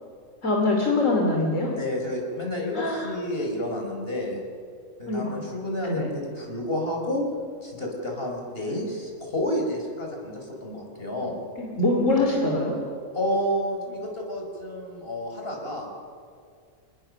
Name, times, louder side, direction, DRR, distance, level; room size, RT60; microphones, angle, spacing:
voice 1, 0.4-1.8 2.7-3.1 5.1-5.4 5.8-6.1 11.6-12.8, left 2 dB, 70° left, 0 dB, 3.2 m, -24 dB
voice 2, 1.7-4.4 5.0-7.2 7.6-11.3 13.1-15.9, left 1 dB, 45° left, 0 dB, 5.2 m, -30 dB
27.5 x 20.0 x 6.6 m, 2.3 s
omnidirectional pair, 1.4 m